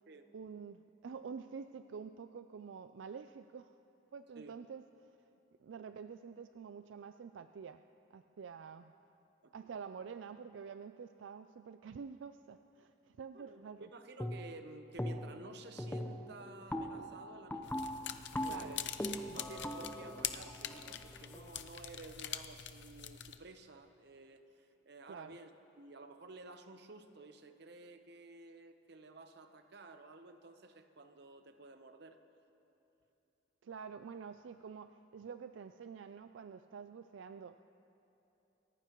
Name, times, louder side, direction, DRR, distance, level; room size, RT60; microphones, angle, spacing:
voice 1, 0.3-3.7 4.1-5.2 5.6-7.8 8.1-8.9 9.5-13.9 18.5-18.8 25.1-25.3 33.6-37.6, right 6 dB, 85° right, 9 dB, 0.4 m, -48 dB
voice 2, 13.3-17.9 18.4-18.9 19.3-25.5 25.8-32.2, right 3 dB, 60° right, 8 dB, 0.9 m, -53 dB
sound 1, 14.2-14.6 15.0-15.5 15.8-21.6, equal, 10° left, 0.8 m, -41 dB
sound 2, 17.6-23.4, left 10 dB, 65° left, 0.7 m, -44 dB
28.5 x 15.0 x 3.0 m, 3.0 s
head